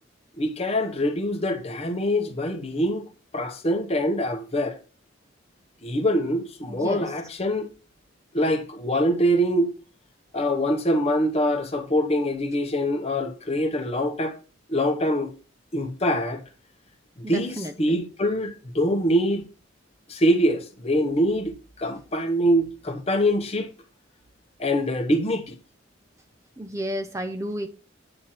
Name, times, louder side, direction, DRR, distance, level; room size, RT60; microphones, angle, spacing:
voice 1, 0.4-3.1 3.3-4.8 5.8-7.7 8.3-9.7 10.3-14.4 14.7-15.3 15.7-16.4 17.3-19.5 20.1-23.7 24.6-25.6, equal, 35° left, 0.9 m, -24 dB
voice 2, 6.7-7.1 17.2-17.7 26.6-27.7, equal, 15° right, 0.5 m, -31 dB
8.8 x 3.2 x 5.6 m
head